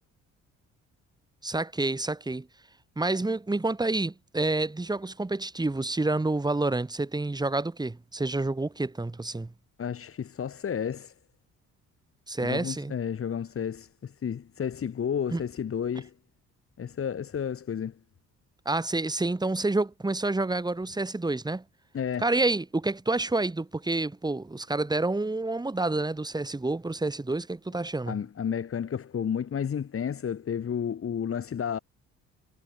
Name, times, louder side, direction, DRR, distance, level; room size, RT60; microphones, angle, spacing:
voice 1, 1.4-2.5 3.0-9.5 12.3-12.9 15.3-15.4 18.7-21.6 22.2-28.2, right 2 dB, 15° right, 1.9 m, -28 dB
voice 2, 9.8-11.1 12.4-16.1 16.8-17.9 21.9-22.3 28.1-31.8, left 8 dB, 45° left, 2.1 m, -31 dB
cardioid pair, 90°, 30 cm